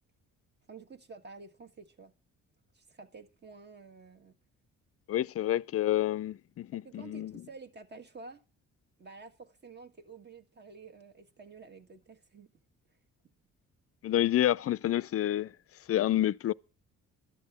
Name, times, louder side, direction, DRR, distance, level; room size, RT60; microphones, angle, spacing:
voice 1, 0.7-2.1 2.7-4.4 6.8-8.4 9.0-12.5, right 4 dB, 35° right, 1.5 m, -50 dB
voice 2, 5.1-7.3 14.0-15.5 15.9-16.5, left 13 dB, 50° left, 0.5 m, -28 dB
12.0 x 7.6 x 7.1 m
cardioid pair, 90°, 30 cm